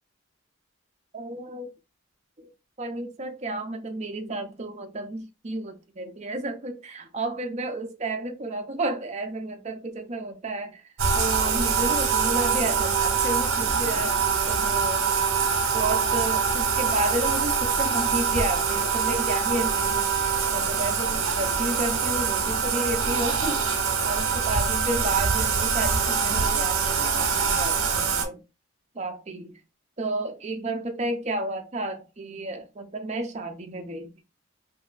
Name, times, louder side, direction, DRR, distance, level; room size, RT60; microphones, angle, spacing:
voice 1, 1.1-1.7 2.4-2.5 2.8-10.8 11.1-14.2 14.5-15.0 15.7-20.1 20.5-28.4 28.9-29.6 30.0-34.2, right 2 dB, 30° right, 0.5 m, -31 dB
Bathtub (filling or washing), 11.0-28.2, right 6 dB, 70° right, 0.8 m, -24 dB
3.0 x 2.6 x 2.4 m
head